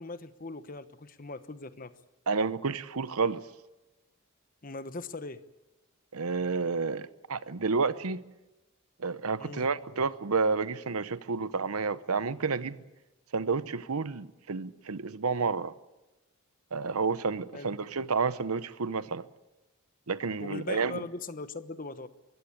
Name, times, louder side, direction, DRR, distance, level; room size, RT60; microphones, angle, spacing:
voice 1, 0.0-1.9 4.6-5.4 9.4-9.7 17.5-17.7 20.4-22.1, left 3 dB, 40° left, 1.0 m, -40 dB
voice 2, 2.3-3.5 6.1-8.2 9.0-12.8 13.3-15.7 16.7-19.3 20.1-21.0, right 4 dB, 85° right, 0.9 m, -30 dB
23.0 x 16.0 x 8.5 m
head